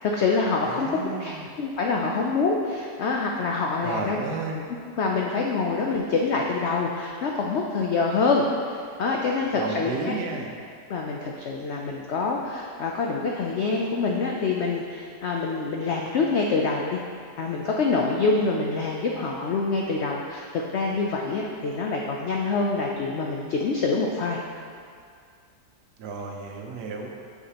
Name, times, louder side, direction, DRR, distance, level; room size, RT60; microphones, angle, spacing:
voice 1, 0.0-4.2 5.0-10.1 10.9-17.0 17.4-24.4, left 4 dB, 80° left, 0 dB, 0.6 m, -26 dB
voice 2, 0.6-1.5 3.8-4.6 9.5-10.5 26.0-27.1, right 4 dB, 80° right, 1 dB, 1.4 m, -32 dB
8.1 x 5.9 x 2.9 m, 2.2 s
omnidirectional pair, 1.8 m